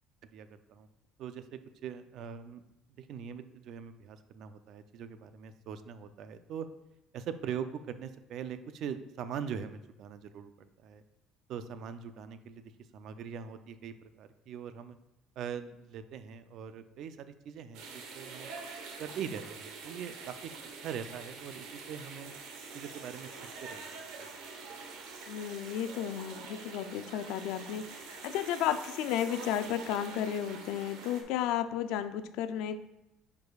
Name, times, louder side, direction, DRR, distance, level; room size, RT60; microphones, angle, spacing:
voice 1, 0.3-0.9 1.2-2.6 3.0-6.7 7.1-11.0 11.5-12.6 12.9-15.0 15.4-18.5 19.0-20.4 20.8-22.3 22.7-23.9 24.2-24.3, right 7 dB, 55° right, 11 dB, 0.4 m, -42 dB
sound 1, 17.7-31.2, right 4 dB, 80° right, 1.1 m, -45 dB
voice 2, 25.3-32.8, left 10 dB, 75° left, 11 dB, 0.4 m, -33 dB
9.2 x 4.8 x 2.4 m, 0.96 s
cardioid pair, 150°, 0 cm